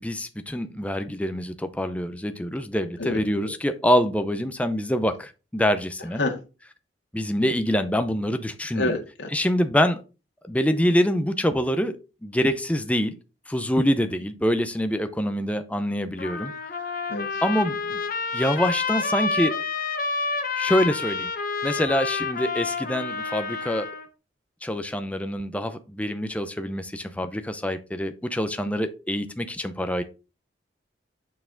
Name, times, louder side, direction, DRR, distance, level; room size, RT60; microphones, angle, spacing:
voice 1, 0.0-6.2 7.1-8.9 9.3-10.0 10.5-12.0 12.2-13.2 13.5-16.5 17.4-18.0 18.3-19.5 20.6-21.3 21.6-23.9 24.6-30.0, equal, 5° left, 9 dB, 0.6 m, -25 dB
voice 2, 3.0-3.5 6.2-6.4 8.7-9.3 17.1-17.4, left 2 dB, 80° left, 1 dB, 1.9 m, -28 dB
Trumpet, 16.2-24.1, left 4 dB, 45° left, 0.9 m, -29 dB
8.5 x 4.5 x 3.8 m, 0.31 s
head